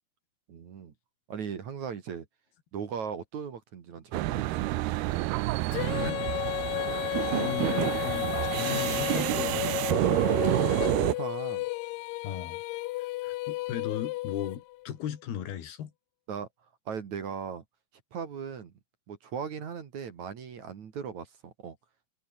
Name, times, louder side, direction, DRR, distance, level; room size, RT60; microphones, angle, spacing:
voice 1, 0.5-0.9 1.3-2.3 2.7-4.7 6.6-6.7 10.5-11.7 16.3-16.5 16.9-17.6 18.1-18.7 19.1-21.8, right 7 dB, 50° right, 3.2 m, -38 dB
sound 1, 4.1-11.2, right 18 dB, 80° right, 2.8 m, -28 dB
Female singing, 5.7-14.9, left 19 dB, 90° left, 1.9 m, -33 dB
voice 2, 7.0-10.2 12.2-12.6 13.0-15.9, left 10 dB, 70° left, 4.1 m, -37 dB
omnidirectional pair, 4.6 m